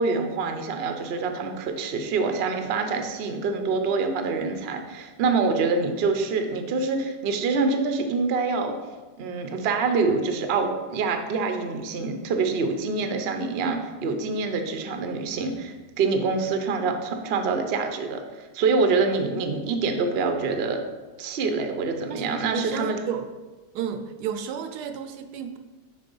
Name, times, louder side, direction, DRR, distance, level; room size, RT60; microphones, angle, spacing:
voice 1, 0.0-8.8 9.2-20.8 21.2-23.0, right 4 dB, 55° right, 6 dB, 0.7 m, -26 dB
voice 2, 22.1-23.3 23.7-25.6, right 8 dB, 75° right, 7 dB, 1.1 m, -32 dB
6.5 x 4.3 x 5.3 m, 1.2 s
omnidirectional pair, 1.8 m